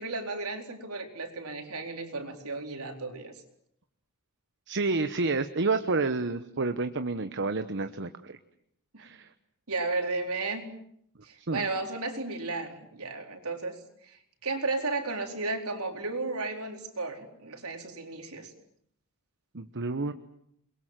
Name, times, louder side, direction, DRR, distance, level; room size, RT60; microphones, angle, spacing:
voice 1, 0.0-3.3 8.9-9.0 9.7-10.6 11.2-13.7 14.0-18.5, right 3 dB, 75° right, 4 dB, 4.3 m, -34 dB
voice 2, 4.7-8.4 9.0-9.3 11.5-11.7 19.5-20.1, right 3 dB, 55° right, 9 dB, 1.1 m, -29 dB
29.0 x 22.0 x 7.7 m, 0.71 s
head